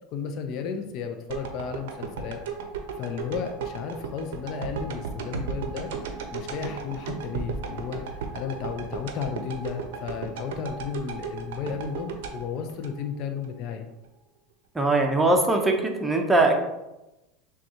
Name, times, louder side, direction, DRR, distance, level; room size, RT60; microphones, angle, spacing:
voice 1, 0.1-2.4 3.0-5.9 6.3-8.0 8.3-13.9, left 7 dB, 55° left, 6 dB, 0.5 m, -33 dB
sound 1, 1.3-13.5 13.9-14.0, right 6 dB, 80° right, 0.5 m, -35 dB
voice 2, 14.7-15.7 16.0-16.6, right 2 dB, 10° right, 3 dB, 0.6 m, -20 dB
6.0 x 2.3 x 2.8 m, 0.97 s
supercardioid pair, 105°, 0 cm